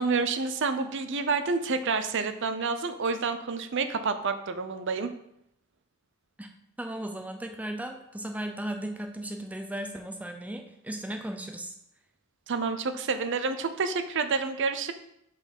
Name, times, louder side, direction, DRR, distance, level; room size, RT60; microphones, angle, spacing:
voice 1, 0.0-5.1 12.5-14.9, right 4 dB, 60° right, 9 dB, 0.6 m, -28 dB
voice 2, 6.8-11.7, right 1 dB, 5° right, 4 dB, 0.5 m, -36 dB
6.1 x 4.2 x 5.3 m, 0.77 s
head